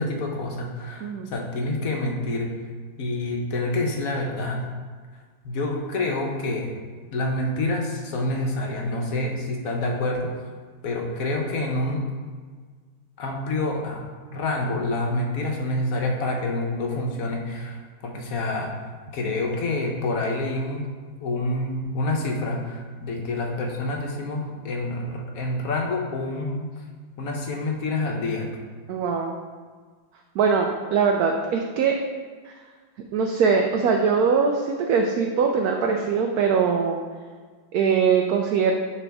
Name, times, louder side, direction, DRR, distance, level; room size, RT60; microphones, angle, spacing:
voice 1, 0.0-2.5 3.0-4.6 5.4-6.7 7.1-10.3 10.8-12.1 13.2-14.0 14.3-18.8 19.1-20.9 21.2-26.7 27.2-28.5, left 2 dB, 55° left, 1 dB, 1.1 m, -27 dB
voice 2, 1.0-1.3 28.9-29.4 30.3-31.9 32.4-32.5 33.1-37.0 37.7-38.7, right 5 dB, 75° right, 2 dB, 0.9 m, -22 dB
9.9 x 3.4 x 3.5 m, 1.5 s
omnidirectional pair, 2.1 m